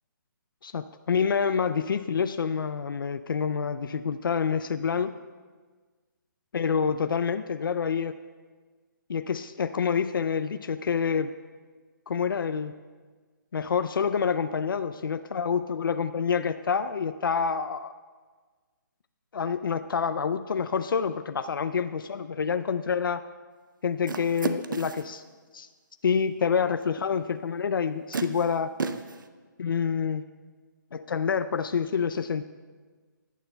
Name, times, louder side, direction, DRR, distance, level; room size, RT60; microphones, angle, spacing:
voice 1, 0.6-5.1 6.5-8.2 9.1-11.3 12.1-12.7 13.5-17.9 19.3-23.2 23.8-25.2 25.5-25.7 26.0-28.7 29.6-30.2 30.9-32.4, left 6 dB, 90° left, 11 dB, 0.4 m, -27 dB
sound 1, 24.1-25.1 27.0-27.1 28.1-29.3, right 4 dB, 70° right, 0.7 m, -33 dB
18.0 x 9.1 x 2.2 m, 1.4 s
hypercardioid pair, 175°, 11 cm